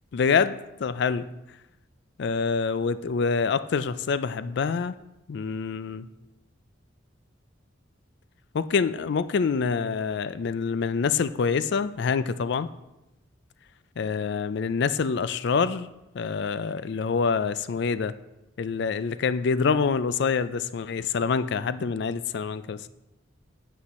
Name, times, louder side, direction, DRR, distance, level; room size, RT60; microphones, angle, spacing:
voice 1, 0.1-0.6 0.8-1.2 2.2-4.9 5.3-6.1 8.5-12.7 14.0-15.9 16.1-18.1 18.6-22.9, left 5 dB, 60° left, 14 dB, 0.4 m, -26 dB
8.3 x 8.0 x 4.2 m, 0.97 s
head